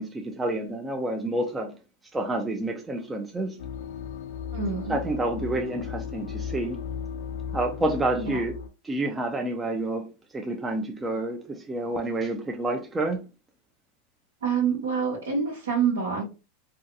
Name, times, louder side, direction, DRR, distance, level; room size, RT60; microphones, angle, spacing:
voice 1, 0.0-1.7 2.1-3.6 4.9-6.8 7.5-8.5 8.8-13.2, right 2 dB, 15° right, 0.4 m, -29 dB
sound 1, 3.6-8.7, left 7 dB, 75° left, 0.3 m, -35 dB
voice 2, 4.5-5.0 8.1-8.4 14.4-16.2, right 6 dB, 90° right, 1.0 m, -26 dB
2.6 x 2.3 x 2.5 m
hypercardioid pair, 105°, 0 cm